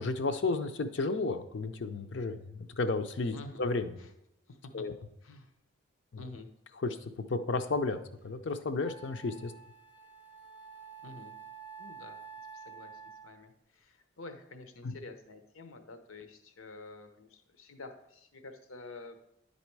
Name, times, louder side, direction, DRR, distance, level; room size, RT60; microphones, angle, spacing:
voice 1, 0.0-3.9 4.7-4.9 6.1-6.2 6.8-7.0 7.3-8.0 8.2-9.5 14.8-14.9, left 3 dB, 60° left, 9 dB, 0.5 m, -32 dB
voice 2, 3.3-3.7 4.0-4.1 4.5-4.9 5.2-5.5 6.2-6.5 11.0-11.4 11.8-12.2 12.5-19.2, left 3 dB, 80° left, 7 dB, 0.8 m, -49 dB
Wind instrument woodwind instrument, 8.2-8.3 8.8-13.5, right 6 dB, 5° right, 0.5 m, -49 dB
10.5 x 4.2 x 4.6 m, 0.80 s
head